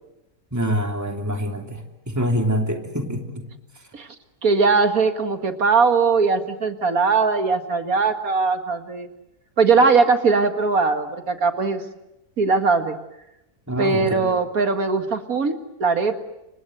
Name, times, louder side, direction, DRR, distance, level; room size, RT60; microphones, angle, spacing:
voice 1, 0.5-3.5 13.7-14.4, equal, 10° right, 4 dB, 3.1 m, -25 dB
voice 2, 4.4-9.1 9.6-11.8 12.4-13.0 13.8-15.5 15.8-16.2, right 4 dB, 60° right, 8 dB, 2.3 m, -20 dB
29.5 x 25.0 x 7.9 m, 0.89 s
omnidirectional pair, 1.7 m